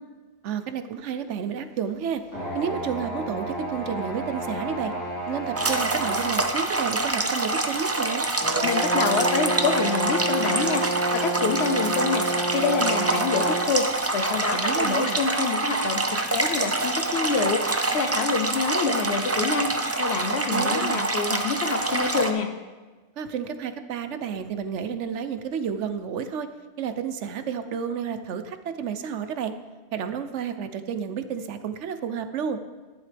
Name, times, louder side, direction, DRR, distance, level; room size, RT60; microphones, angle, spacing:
voice 1, 0.4-2.2 2.5-4.9 5.3-8.3 14.5-15.2 20.5-21.0 23.2-26.5 26.8-29.5 29.9-32.6, right 7 dB, 80° right, 10 dB, 1.0 m, -31 dB
sound 1, 2.3-6.4 7.1-7.2 8.4-13.7, right 1 dB, 15° left, 3.8 m, -30 dB
sound 2, 5.6-22.3, right 2 dB, 20° right, 0.4 m, -26 dB
voice 2, 8.6-13.9 14.1-22.5, left 5 dB, 70° left, 8 dB, 1.0 m, -27 dB
11.5 x 11.0 x 3.4 m, 1.3 s
omnidirectional pair, 1.2 m